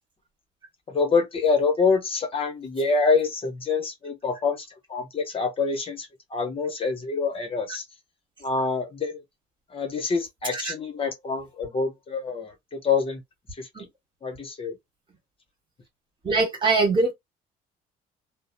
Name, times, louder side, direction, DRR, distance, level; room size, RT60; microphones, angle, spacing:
voice 1, 0.9-7.8 8.4-9.2 9.7-13.2 13.6-13.7 14.2-14.7, left 4 dB, 35° left, 0.9 m, -26 dB
voice 2, 16.2-17.1, right 3 dB, 30° right, 1.5 m, -22 dB
2.6 x 2.0 x 2.5 m
cardioid pair, 110°, 17 cm